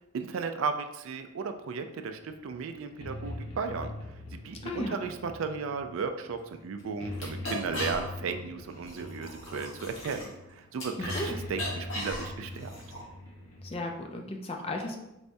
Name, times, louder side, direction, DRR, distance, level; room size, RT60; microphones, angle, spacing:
voice 1, 0.1-12.7, right 5 dB, 65° right, 7 dB, 0.3 m, -35 dB
sound 1, 2.2-14.0, left 1 dB, 85° left, 1.0 m, -43 dB
voice 2, 4.6-5.0 11.0-11.3 13.6-15.0, left 1 dB, 25° left, 2 dB, 0.4 m, -35 dB
sound 2, 6.4-6.5 6.8-6.9 7.1-8.3 8.7-11.3 11.5-13.0, left 1 dB, 65° left, 1.3 m, -38 dB
4.1 x 3.4 x 2.6 m, 0.92 s
head